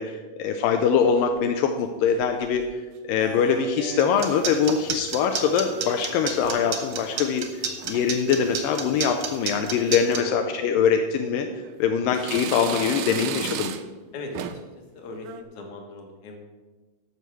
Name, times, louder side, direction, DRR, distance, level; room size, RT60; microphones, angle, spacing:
voice 1, 0.0-2.6 3.0-7.5 7.9-11.5 11.8-13.8, left 7 dB, 85° left, 5 dB, 2.3 m, -23 dB
sound 1, 0.8-1.5 2.2-2.7 3.2-4.4 4.7-5.0 5.3-7.3 7.6-8.1 8.7-9.0 9.3-9.4 10.4-10.5 11.1-11.8 12.1-14.0 14.3-14.7 15.1-15.4, right 10 dB, 80° right, 1.9 m, -37 dB
sound 2, 4.0-10.2, right 7 dB, 60° right, 1.5 m, -30 dB
voice 2, 14.1-14.6 14.9-16.4, left 3 dB, 60° left, 3 dB, 2.7 m, -39 dB
12.0 x 6.5 x 6.1 m, 1.3 s
omnidirectional pair, 4.1 m